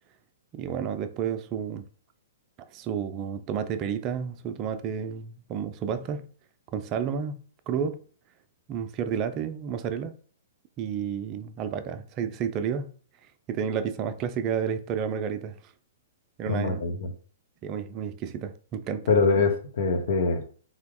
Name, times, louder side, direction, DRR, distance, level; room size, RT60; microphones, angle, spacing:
voice 1, 0.5-1.8 2.7-6.2 6.7-7.4 7.7-8.0 8.7-10.1 10.8-12.9 13.5-15.6 16.4-16.8 17.6-19.1, right 7 dB, 35° right, 0.4 m, -31 dB
voice 2, 16.5-17.1 19.1-20.4, left 4 dB, 60° left, 0.9 m, -24 dB
3.6 x 2.9 x 3.6 m
hypercardioid pair, 120°, 0 cm